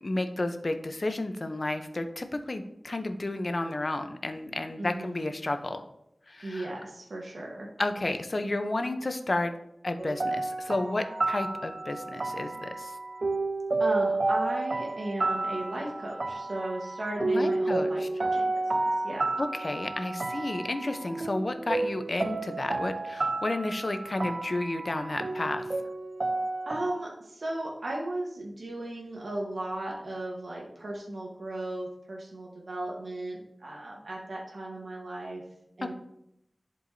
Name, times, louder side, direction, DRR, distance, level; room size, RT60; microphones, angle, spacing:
voice 1, 0.0-5.8 6.3-6.7 7.8-9.5 9.8-13.0 17.2-18.1 19.4-25.7 35.8-35.9, left 2 dB, 50° left, 8 dB, 0.6 m, -32 dB
voice 2, 4.8-5.3 6.4-7.7 13.8-19.3 26.6-35.4 35.8-35.9, right 1 dB, 85° right, -3 dB, 1.2 m, -36 dB
sound 1, 10.0-27.0, right 2 dB, 55° right, 0.3 m, -31 dB
11.0 x 4.6 x 2.7 m, 0.80 s
wide cardioid pair, 75°, 0 cm